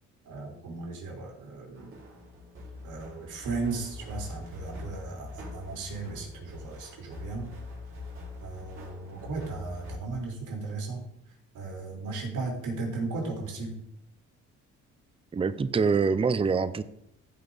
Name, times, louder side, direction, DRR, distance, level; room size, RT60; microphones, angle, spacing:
voice 1, 0.2-1.9 2.8-7.5 8.4-11.0 11.5-13.7, right 3 dB, 80° right, -1 dB, 3.8 m, -36 dB
sound 1, 1.7-9.9, left 3 dB, 45° right, 3.9 m, -43 dB
voice 2, 15.3-16.8, right 5 dB, 20° right, 13 dB, 0.5 m, -25 dB
15.5 x 5.5 x 4.0 m, 0.78 s
cardioid pair, 90°, 30 cm